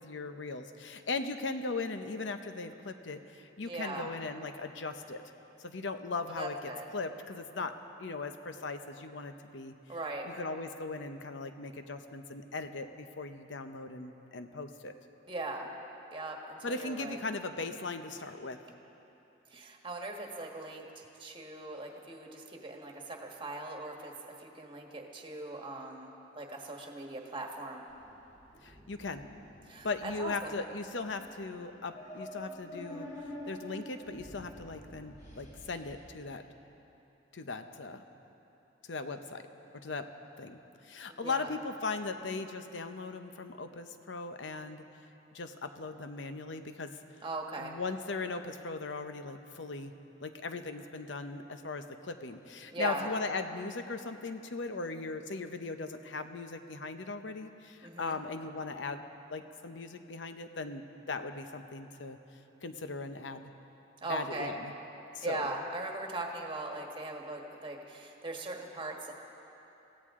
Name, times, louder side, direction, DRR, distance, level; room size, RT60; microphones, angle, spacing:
voice 1, 0.0-5.2 5.6-6.6 6.9-7.7 8.0-9.8 10.2-14.9 16.6-18.6 28.6-29.2 29.8-33.1 33.5-36.4 37.3-38.0 38.8-39.4 39.7-40.1 40.4-44.8 45.3-47.0 47.6-49.9 50.2-59.0 59.3-62.2 62.6-63.5 64.1-64.7 65.1-65.5, left 3 dB, 70° left, 8 dB, 0.8 m, -38 dB
voice 2, 3.7-4.1 6.3-6.9 9.9-10.3 15.3-15.7 16.1-17.2 19.5-26.1 26.3-27.8 29.7-30.6 41.1-41.5 47.2-47.7 52.7-53.1 57.8-58.2 64.0-64.5 65.2-69.1, right 2 dB, 25° right, 1 dB, 1.5 m, -40 dB
sound 1, 27.9-36.1, equal, 35° left, 3.4 m, -48 dB
23.0 x 16.0 x 3.7 m, 3.0 s
head